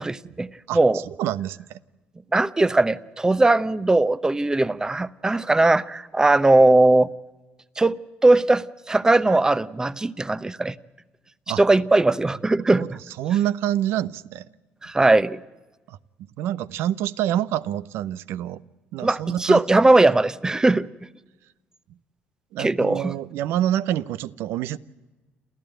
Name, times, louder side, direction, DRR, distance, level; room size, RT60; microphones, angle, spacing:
voice 1, 0.0-1.0 2.3-7.1 7.8-8.0 8.2-10.7 11.6-13.0 14.8-15.4 19.0-20.9 22.6-23.1, right 2 dB, 15° right, 0.8 m, -19 dB
voice 2, 1.1-1.8 9.3-9.4 11.5-11.6 12.8-12.9 13.2-14.4 15.9-16.0 16.4-18.6 18.9-19.9 22.5-24.8, right 12 dB, 80° right, 0.7 m, -27 dB
28.5 x 14.5 x 9.0 m
supercardioid pair, 80°, 4 cm